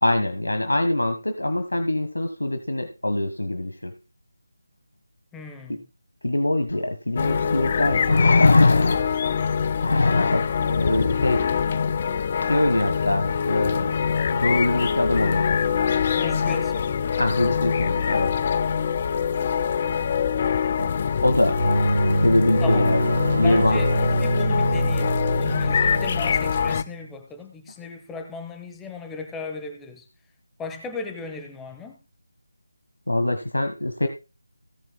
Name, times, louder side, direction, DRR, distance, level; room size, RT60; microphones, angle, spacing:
voice 1, 0.0-3.9 5.7-5.8 6.2-8.6 10.3-11.5 12.4-14.0 14.3-15.6 17.2-18.3 20.8-20.9 21.2-21.6 22.1-23.1 23.3-23.8 33.1-34.1, left 1 dB, 75° left, 1.5 m, -24 dB
voice 2, 5.3-5.8 16.1-17.1 22.6-22.9 23.4-30.1 30.6-32.0, left 4 dB, 5° left, 1.0 m, -36 dB
sound 1, 6.7-6.8 8.0-9.3 9.8-10.5 12.4-12.5, left 3 dB, 55° left, 1.1 m, -19 dB
sound 2, 7.2-26.8, left 7 dB, 30° left, 0.5 m, -24 dB
sound 3, 21.4-27.0, right 1 dB, 80° right, 1.1 m, -25 dB
17.5 x 9.2 x 2.2 m
figure-of-eight pair, 160°, 0 cm